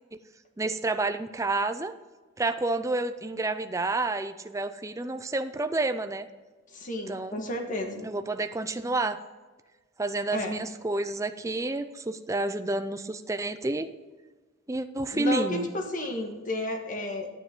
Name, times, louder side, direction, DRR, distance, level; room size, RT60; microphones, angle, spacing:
voice 1, 0.6-1.9 2.4-6.3 7.1-7.4 8.0-9.2 10.0-13.9 14.7-15.7, right 2 dB, 15° right, 8 dB, 0.4 m, -29 dB
voice 2, 6.7-8.0 10.3-10.6 15.1-17.3, left 1 dB, 40° left, 3 dB, 1.5 m, -32 dB
10.5 x 9.5 x 3.7 m, 1.3 s
head